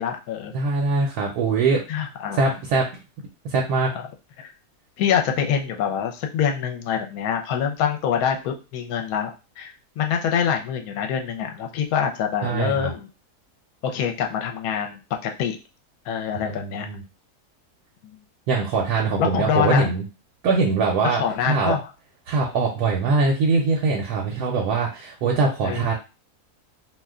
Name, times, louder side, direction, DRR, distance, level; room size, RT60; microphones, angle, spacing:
voice 1, 0.0-0.5 1.9-2.5 3.9-4.0 4.4-4.5 5.0-13.1 13.8-15.6 16.1-16.9 18.0-18.2 19.2-19.9 21.0-21.8 25.6-25.9, left 8 dB, 70° left, 4 dB, 1.0 m, -25 dB
voice 2, 0.5-1.8 2.3-2.9 3.4-3.9 12.4-12.9 16.3-17.0 18.5-20.0 20.4-21.2 21.5-21.8 22.3-25.9, right 4 dB, 75° right, 0 dB, 1.2 m, -22 dB
2.7 x 2.2 x 3.5 m, 0.30 s
omnidirectional pair, 1.7 m